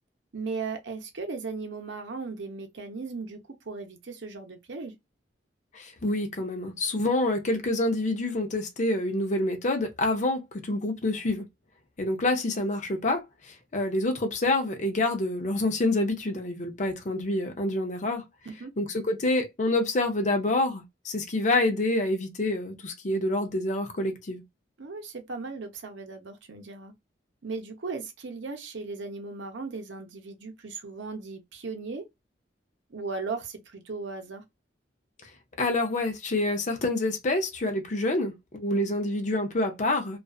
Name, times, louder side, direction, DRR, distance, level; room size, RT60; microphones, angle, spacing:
voice 1, 0.3-3.4 3.6-4.9 18.5-18.7 24.8-26.9 27.4-32.1 32.9-34.4, right 4 dB, 75° right, 0.7 m, -37 dB
voice 2, 5.7-11.4 12.0-18.2 18.8-24.4 35.6-40.2, left 2 dB, 40° left, 0.5 m, -27 dB
2.4 x 2.4 x 2.3 m
head